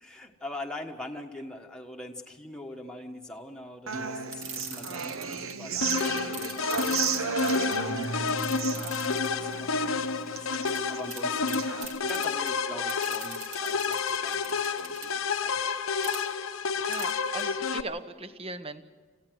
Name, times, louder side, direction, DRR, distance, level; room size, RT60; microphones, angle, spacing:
voice 1, 0.0-6.7 7.2-11.7 12.0-15.6, left 1 dB, 5° left, 1 dB, 1.4 m, -43 dB
Human voice / Acoustic guitar, 3.9-11.8, right 5 dB, 85° right, 1.0 m, -34 dB
sound 1, 4.3-5.5 5.9-9.5 10.7-10.8 11.1-11.2 11.5-12.5 12.9-15.1 16.0-16.2 16.9-17.1 17.4-17.5, right 5 dB, 65° right, 2.9 m, -41 dB
sound 2, 5.8-17.8, left 5 dB, 90° left, 1.0 m, -30 dB
voice 2, 16.9-18.8, right 2 dB, 30° right, 11 dB, 1.0 m, -39 dB
26.5 x 15.5 x 6.2 m, 1.5 s
head